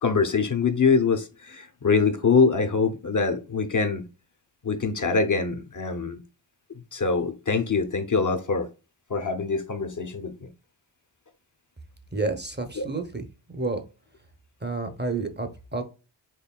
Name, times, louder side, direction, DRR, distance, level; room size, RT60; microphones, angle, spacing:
voice 1, 0.0-4.0 4.6-6.2 6.9-8.7 9.1-10.5 12.8-12.9, left 4 dB, 40° left, 0.6 m, -24 dB
voice 2, 12.1-13.8 14.6-15.8, right 3 dB, 25° right, 0.7 m, -30 dB
4.5 x 3.1 x 2.2 m
cardioid pair, 55°, 46 cm